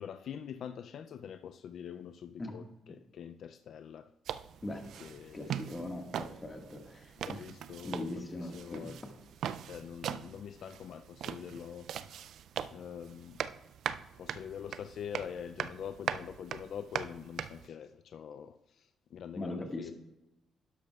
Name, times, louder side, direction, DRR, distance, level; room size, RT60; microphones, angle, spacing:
voice 1, 0.0-4.1 5.0-5.7 7.2-9.0 9.6-12.3 12.7-13.4 14.2-19.9, left 8 dB, 65° left, 0.3 m, -45 dB
sound 1, 4.3-17.7, right 9 dB, 70° right, 0.3 m, -41 dB
voice 2, 5.3-7.5 7.8-8.9 19.3-19.9, left 1 dB, 25° left, 1.6 m, -40 dB
12.0 x 10.0 x 2.3 m
cardioid pair, 90°, 0 cm